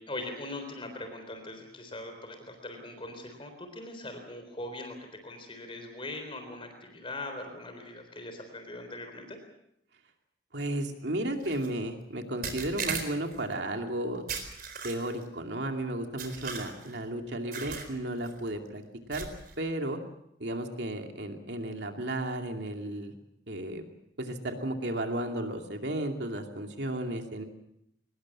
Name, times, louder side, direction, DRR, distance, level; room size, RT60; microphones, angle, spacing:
voice 1, 0.0-9.4, left 2 dB, 30° left, 6 dB, 3.8 m, -41 dB
voice 2, 10.5-14.2 14.8-18.8 19.1-19.3 19.6-20.0 20.4-23.1 23.5-23.8 24.2-27.4, right 1 dB, 70° right, 4 dB, 2.5 m, -33 dB
sound 1, 11.4-11.7 12.4-13.4 14.3-15.2 16.2-17.0 17.5-17.9 18.2-18.5 19.1-19.5, right 6 dB, 50° right, 4.3 m, -37 dB
24.0 x 20.5 x 7.3 m, 0.76 s
head